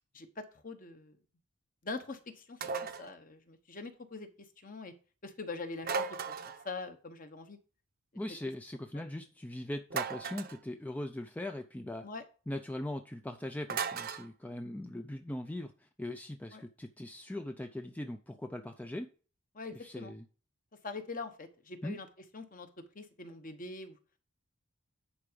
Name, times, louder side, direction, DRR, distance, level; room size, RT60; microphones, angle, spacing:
voice 1, 0.1-1.2 1.8-4.3 4.6-4.9 5.2-6.3 6.6-7.6 8.9-9.0 12.0-12.2 16.5-16.6 19.5-20.1 20.8-22.1 22.3-22.7 22.9-24.0, left 3 dB, 40° left, 1.1 m, -43 dB
sound 1, 2.6-3.1 5.8-6.7 9.9-10.6 13.7-14.3, right 5 dB, 45° right, 0.7 m, -36 dB
voice 2, 8.1-12.1 12.5-19.1 19.7-20.3 21.8-22.0, left 1 dB, 5° left, 0.4 m, -40 dB
10.0 x 4.8 x 5.1 m
head